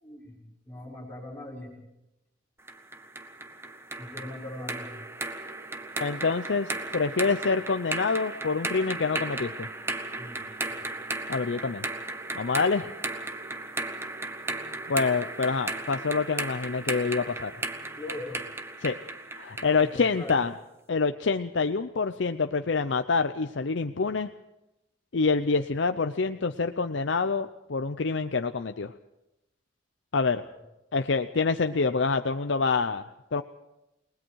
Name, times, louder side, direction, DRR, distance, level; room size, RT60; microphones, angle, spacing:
voice 1, 0.0-0.4 0.7-1.7 4.0-4.9 10.2-10.8 18.0-18.4 19.8-20.4 30.4-30.6, left 1 dB, 10° left, -4 dB, 6.4 m, -40 dB
sound 1, 2.7-20.5, right 2 dB, 15° right, 1.0 m, -35 dB
voice 2, 6.0-9.7 11.3-11.8 12.4-12.9 14.9-17.5 18.8-19.0 19.4-20.5 20.9-24.3 25.1-28.9 30.1-30.4 30.9-33.0 33.3-33.4, left 4 dB, 70° left, 8 dB, 0.6 m, -26 dB
29.0 x 19.5 x 4.7 m, 0.91 s
head